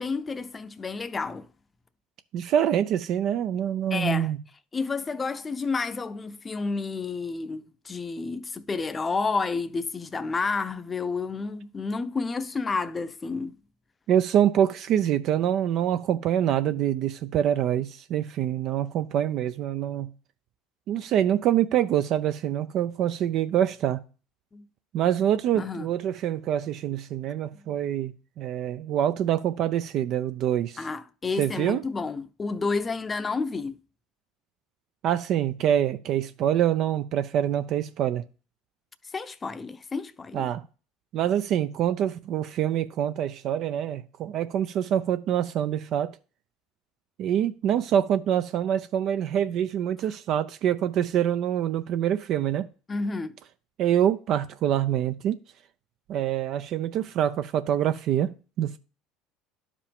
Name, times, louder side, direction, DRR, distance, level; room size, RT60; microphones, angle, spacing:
voice 1, 0.0-1.5 3.9-4.3 4.7-13.6 24.5-24.7 25.5-25.9 27.5-27.6 30.8-33.8 39.1-40.5 52.9-53.4, left 4 dB, 25° left, 0.6 m, -30 dB
voice 2, 2.3-4.4 14.1-20.1 20.9-24.0 24.9-30.8 31.4-31.8 35.0-38.2 40.3-40.6 41.1-46.1 47.2-52.7 53.8-55.4 56.1-58.3 58.6-58.8, right 10 dB, 55° right, 0.5 m, -25 dB
11.0 x 5.0 x 3.5 m
supercardioid pair, 90°, 0 cm